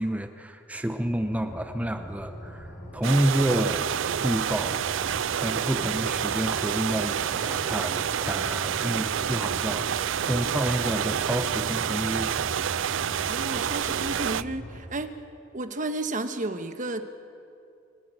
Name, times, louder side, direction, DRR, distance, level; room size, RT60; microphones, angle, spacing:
voice 1, 0.0-3.9 4.2-4.8 5.4-12.6, right 1 dB, 10° right, 7 dB, 0.7 m, -29 dB
sound 1, 1.1-14.8, equal, 55° left, 5.6 m, -41 dB
sound 2, 3.0-14.4, right 9 dB, 85° right, 0.4 m, -28 dB
voice 2, 13.3-15.1 15.5-17.0, right 2 dB, 45° right, 8 dB, 1.2 m, -32 dB
28.0 x 10.5 x 9.0 m, 2.5 s
head